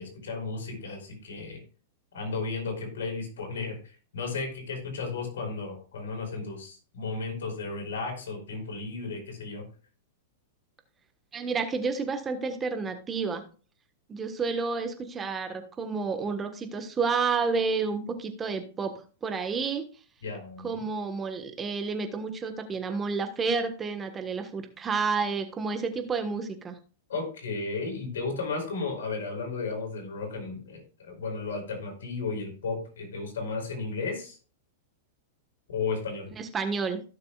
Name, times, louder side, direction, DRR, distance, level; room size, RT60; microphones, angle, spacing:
voice 1, 0.0-1.6 2.1-3.8 4.1-9.6 20.2-20.8 27.1-34.4 35.7-36.3, left 4 dB, 80° left, 2 dB, 4.6 m, -34 dB
voice 2, 11.3-13.4 14.1-18.9 19.2-19.9 20.6-26.8 36.3-37.0, right 4 dB, 20° right, 7 dB, 1.4 m, -30 dB
16.5 x 6.7 x 2.4 m, 0.38 s
hypercardioid pair, 120°, 0 cm